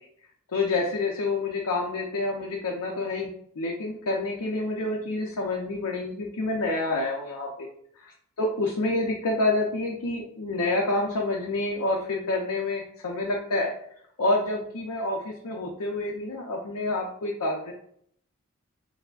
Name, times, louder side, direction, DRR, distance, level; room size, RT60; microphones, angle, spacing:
voice 1, 0.5-3.3 3.6-7.7 8.4-13.7 14.2-17.7, left 2 dB, 90° left, -1 dB, 0.6 m, -28 dB
5.7 x 2.0 x 2.4 m, 0.68 s
head